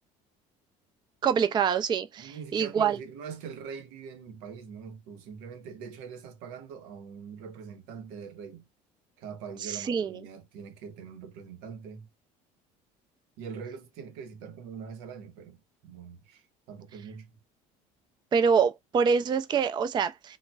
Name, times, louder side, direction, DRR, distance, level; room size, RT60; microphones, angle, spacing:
voice 1, 1.2-3.0 9.7-10.2 18.3-20.4, right 6 dB, 25° right, 0.4 m, -25 dB
voice 2, 2.2-8.7 9.2-12.1 13.4-17.4, right 6 dB, 80° right, 0.8 m, -43 dB
3.7 x 2.0 x 2.3 m
supercardioid pair, 85°, 17 cm